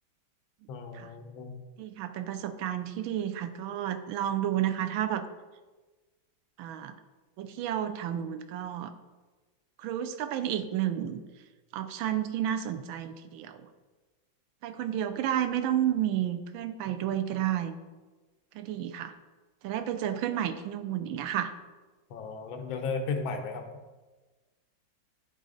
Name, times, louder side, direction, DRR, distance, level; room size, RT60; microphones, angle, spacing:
voice 1, 0.7-1.5 22.1-23.7, left 4 dB, 85° left, 4 dB, 1.6 m, -34 dB
voice 2, 1.8-5.2 6.6-6.9 7.4-8.9 9.8-11.2 11.7-13.6 14.6-17.8 18.5-19.1 19.6-21.5, right 11 dB, 90° right, 10 dB, 1.4 m, -31 dB
9.3 x 4.0 x 3.8 m, 1.2 s
omnidirectional pair, 2.1 m